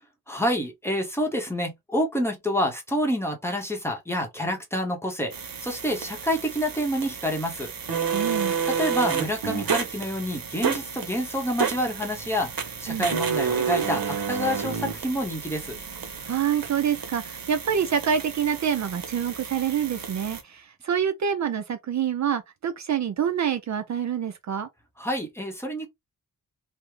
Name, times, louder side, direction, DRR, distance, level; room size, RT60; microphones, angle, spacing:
voice 1, 0.3-5.3 5.6-7.7 8.7-15.8 25.0-25.9, equal, 5° left, 0.8 m, -28 dB
sound 1, 5.3-20.4, right 6 dB, 75° right, 1.0 m, -31 dB
voice 2, 8.1-8.6 12.9-13.1 16.3-24.7, right 8 dB, 55° right, 0.5 m, -26 dB
3.4 x 2.0 x 3.1 m
wide cardioid pair, 135°, 35 cm